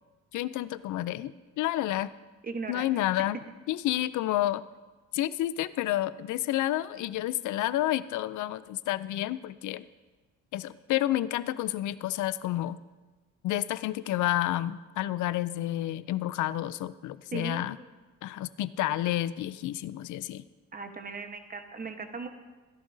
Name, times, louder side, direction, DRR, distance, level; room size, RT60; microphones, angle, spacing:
voice 1, 0.3-2.1 2.7-3.4 3.7-4.6 5.1-9.8 10.5-12.8 13.4-17.7 18.2-20.5, left 14 dB, 75° left, 16 dB, 0.5 m, -30 dB
voice 2, 2.4-2.9 17.3-17.9 20.7-22.3, right 4 dB, 30° right, 6 dB, 1.1 m, -38 dB
16.5 x 11.0 x 2.7 m, 1.3 s
cardioid pair, 90°, 30 cm